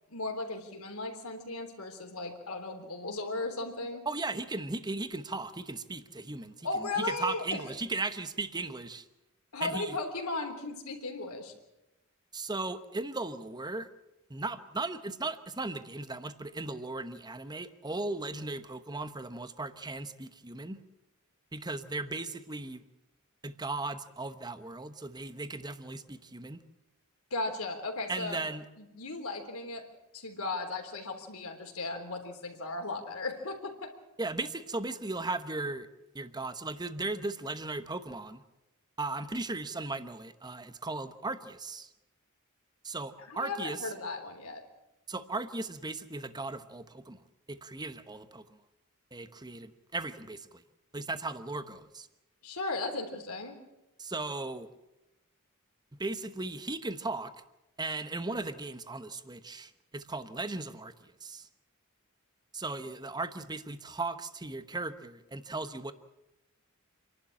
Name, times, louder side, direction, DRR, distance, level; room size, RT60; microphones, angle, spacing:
voice 1, 0.1-4.1 6.6-7.4 9.5-11.5 27.3-28.4 28.8-29.8 30.1-33.9 43.3-44.6 52.4-53.5, left 3 dB, 75° left, 4 dB, 3.5 m, -36 dB
voice 2, 4.0-9.1 9.6-10.0 12.3-13.9 14.3-20.8 21.5-22.8 23.4-26.6 28.1-28.6 34.2-35.9 36.1-38.4 39.0-41.9 42.8-43.9 45.1-47.2 47.5-48.6 49.1-50.6 50.9-52.1 54.0-54.7 56.0-57.3 57.8-61.5 62.5-65.9, right 3 dB, 20° right, 11 dB, 1.0 m, -37 dB
28.0 x 11.5 x 8.6 m, 0.96 s
head